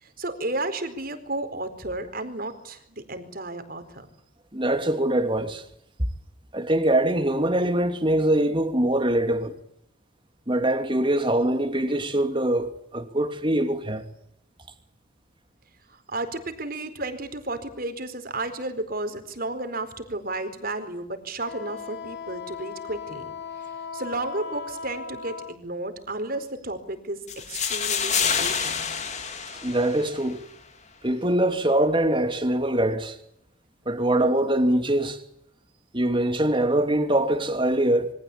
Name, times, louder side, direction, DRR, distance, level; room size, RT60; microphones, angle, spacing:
voice 1, 0.0-4.1 15.9-23.3 23.6-27.2 27.5-28.9, right 2 dB, 45° right, 4.4 m, -33 dB
voice 2, 4.5-5.6 6.5-9.6 10.5-14.0 29.6-30.4 31.0-33.2 33.9-35.2 35.9-38.1, right 1 dB, 25° right, 2.9 m, -23 dB
Wind instrument woodwind instrument, 21.4-25.6, left 5 dB, 50° left, 2.6 m, -37 dB
sound 1, 27.3-30.3, left 7 dB, 35° left, 3.1 m, -28 dB
28.0 x 24.0 x 8.7 m
head